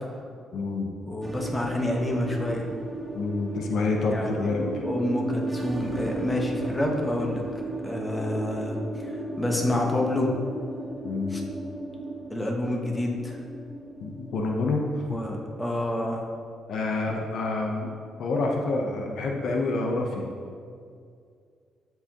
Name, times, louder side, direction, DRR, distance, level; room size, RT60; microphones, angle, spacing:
voice 1, 0.5-0.9 3.1-4.8 11.0-11.4 14.0-15.2 16.7-20.2, left 3 dB, 70° left, 1 dB, 0.8 m, -28 dB
voice 2, 1.0-2.7 4.1-7.4 7.8-8.8 9.4-10.3 11.3-11.4 12.3-13.4 15.1-16.3 17.1-17.2, left 1 dB, 15° left, 0 dB, 1.2 m, -28 dB
sound 1, 1.2-15.9, right 2 dB, 15° right, 0.8 m, -35 dB
13.0 x 4.7 x 2.9 m, 2.3 s
cardioid pair, 90°, 0 cm